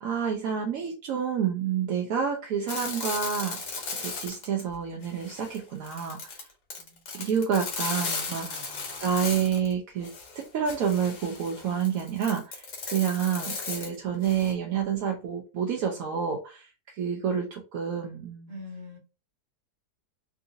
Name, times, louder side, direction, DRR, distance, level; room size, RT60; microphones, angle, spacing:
voice 1, 0.0-3.6 4.0-6.5 7.1-8.7 9.0-10.1 10.3-18.6, right 7 dB, 70° right, 0.9 m, -29 dB
sound 1, 2.7-4.7 5.0-9.7 10.0-14.5, left 4 dB, 80° left, 1.6 m, -36 dB
voice 2, 8.4-9.0 18.5-19.0, left 2 dB, 40° right, 1.5 m, -44 dB
3.7 x 2.5 x 2.5 m
omnidirectional pair, 1.7 m